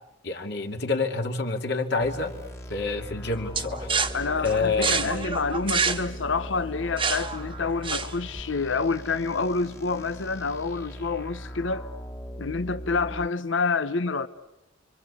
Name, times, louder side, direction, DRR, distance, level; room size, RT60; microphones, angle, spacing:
voice 1, 0.2-2.3 2.7-3.9 4.4-5.1, left 4 dB, 60° left, 2.5 m, -27 dB
sound 1, 2.0-13.3, equal, 15° left, 1.6 m, -39 dB
sound 2, 3.5-8.4, right 5 dB, 25° right, 1.4 m, -28 dB
voice 2, 4.1-11.9 12.4-14.3, left 4 dB, 75° left, 0.9 m, -28 dB
29.5 x 24.0 x 8.4 m
head